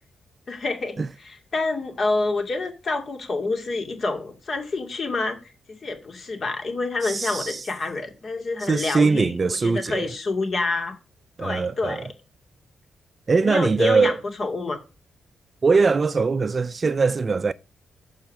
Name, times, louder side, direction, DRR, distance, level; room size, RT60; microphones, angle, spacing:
voice 1, 0.5-1.0 1.2-5.4 5.8-9.3 9.6-11.0 11.4-12.0 13.4-14.8, left 3 dB, 45° left, 2.3 m, -27 dB
voice 2, 7.0-7.7 8.6-10.1 11.4-12.1 13.3-14.2 15.6-17.5, right 4 dB, 35° right, 0.4 m, -21 dB
7.2 x 5.6 x 6.1 m
cardioid pair, 115°, 0 cm